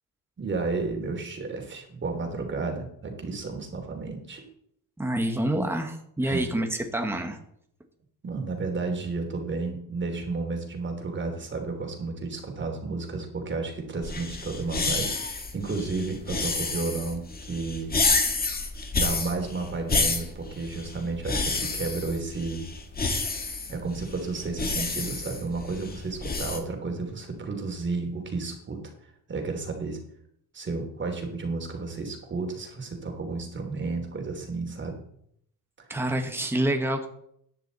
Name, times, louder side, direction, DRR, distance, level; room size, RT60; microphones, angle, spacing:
voice 1, 0.4-4.5 6.2-6.4 8.2-17.9 18.9-22.6 23.7-28.8 29.3-30.0 30.5-35.0, right 3 dB, 30° right, 2 dB, 3.2 m, -32 dB
voice 2, 5.0-7.4 35.9-37.1, right 1 dB, 5° right, 4 dB, 1.5 m, -27 dB
sound 1, 14.0-26.6, left 3 dB, 25° left, 1.8 m, -29 dB
15.0 x 10.5 x 4.1 m, 0.69 s
cardioid pair, 145°, 36 cm